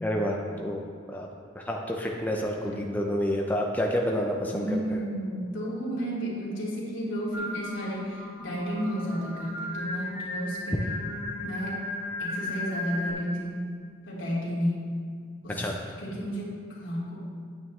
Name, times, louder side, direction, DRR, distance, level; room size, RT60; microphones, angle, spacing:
voice 1, 0.0-0.8 1.1-1.3 1.6-5.0 15.6-15.8, equal, 10° left, -1 dB, 0.5 m, -29 dB
voice 2, 4.5-10.8 11.4-11.8 12.2-13.6 14.1-14.8 15.4-15.7 16.0-17.2, equal, 80° left, -6 dB, 2.5 m, -32 dB
Singing, 7.3-13.1, left 1 dB, 10° right, 1.7 m, -35 dB
9.2 x 8.8 x 3.2 m, 2.1 s
head